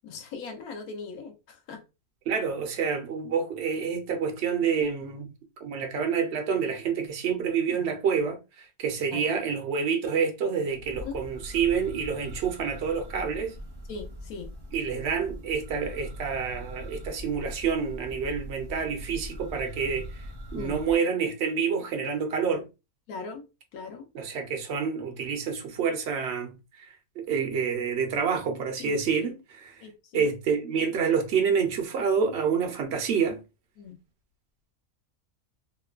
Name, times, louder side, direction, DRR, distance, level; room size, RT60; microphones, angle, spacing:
voice 1, 0.0-1.8 7.7-7.8 9.1-9.3 10.9-11.2 13.9-14.5 20.5-20.8 23.1-24.1 28.8-29.0 29.8-30.3 33.8-34.0, left 4 dB, 75° left, 1.1 m, -40 dB
voice 2, 2.3-5.3 5.6-13.5 14.7-20.1 20.5-22.7 24.1-29.8 30.1-33.4, right 6 dB, 60° right, 0.7 m, -28 dB
Church bell, 10.7-21.0, equal, 25° right, 0.6 m, -41 dB
3.0 x 2.1 x 2.3 m
omnidirectional pair, 1.6 m